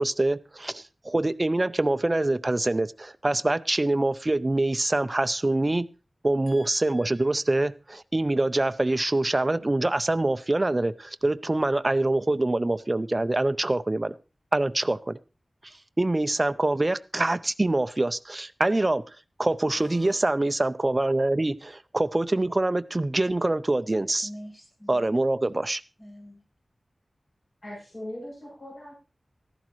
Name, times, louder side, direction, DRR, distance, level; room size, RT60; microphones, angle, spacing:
voice 1, 0.0-5.9 6.2-14.1 14.5-15.2 16.0-19.0 19.4-24.3 24.9-25.8, right 2 dB, 30° right, 0.5 m, -25 dB
voice 2, 6.5-7.2 19.7-20.2 24.2-25.1 26.0-26.4, equal, 10° left, 2.7 m, -46 dB
voice 3, 27.6-28.9, left 1 dB, 55° left, 7.7 m, -39 dB
14.0 x 11.5 x 3.1 m
wide cardioid pair, 90°, 0 cm